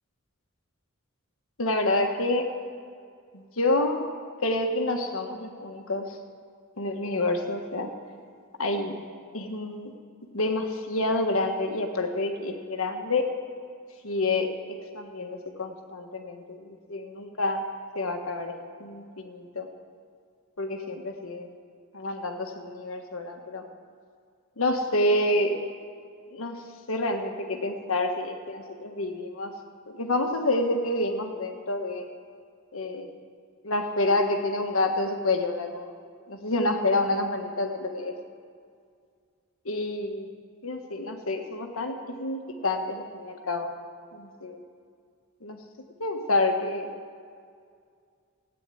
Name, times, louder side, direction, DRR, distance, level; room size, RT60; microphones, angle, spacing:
voice 1, 1.6-2.5 3.3-4.1 4.4-6.1 6.8-7.9 8.6-9.0 9.3-9.9 10.3-13.3 14.0-14.5 14.9-17.6 17.9-19.7 20.6-21.5 21.9-23.6 24.6-25.6 26.3-26.6 26.9-29.5 29.9-32.1 32.7-33.1 33.6-35.9 36.3-38.1 39.6-40.3 40.6-43.7 44.1-44.6 45.4-45.6 46.0-46.9, left 2 dB, 70° left, 4 dB, 1.4 m, -28 dB
16.0 x 9.3 x 9.1 m, 2.2 s
head